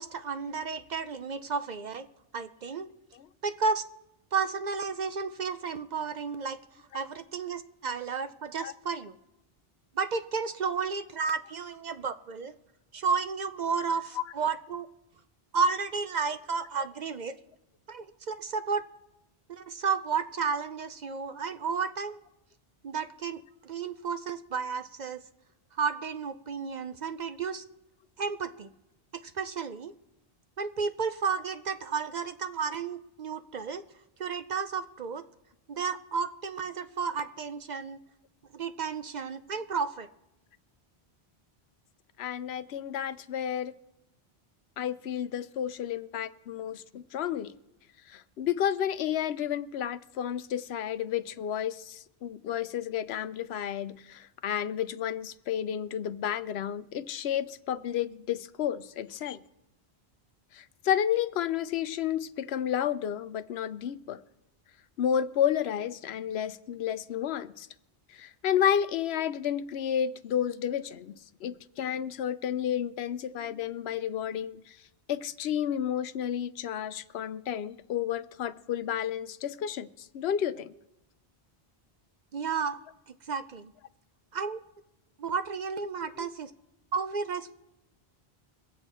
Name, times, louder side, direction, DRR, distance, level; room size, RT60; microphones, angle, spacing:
voice 1, 0.0-2.1 2.3-2.9 3.4-3.8 4.3-6.6 6.9-9.2 9.9-12.5 12.9-14.9 15.5-17.4 17.9-18.8 19.5-22.2 22.8-25.2 25.7-27.6 28.2-28.7 29.2-29.9 30.6-33.8 34.2-35.2 35.7-38.0 38.5-40.1 82.3-82.8 83.1-83.7 84.3-84.6 85.2-86.5 86.9-87.6, right 5 dB, 55° right, 10 dB, 0.6 m, -32 dB
voice 2, 42.2-43.7 44.8-47.6 48.1-59.4 60.5-64.2 65.0-67.7 68.2-74.8 75.1-80.7 86.2-86.3, left 9 dB, 85° left, 14 dB, 0.9 m, -31 dB
23.0 x 8.0 x 4.3 m, 0.88 s
omnidirectional pair, 1.0 m